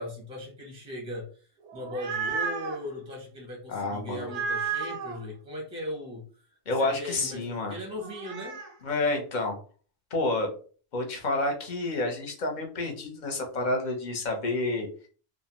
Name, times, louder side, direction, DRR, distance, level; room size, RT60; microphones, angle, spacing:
voice 1, 0.0-6.5 6.8-8.6, left 1 dB, 5° right, 0 dB, 0.5 m, -38 dB
sound 1, 1.6-2.8 4.2-5.2 8.0-8.7, right 5 dB, 85° right, 0.9 m, -32 dB
voice 2, 3.7-4.3 6.7-7.7 8.8-9.6 10.1-10.5 10.9-14.9, left 2 dB, 50° left, 2 dB, 0.7 m, -29 dB
2.5 x 2.1 x 2.9 m, 0.41 s
omnidirectional pair, 1.2 m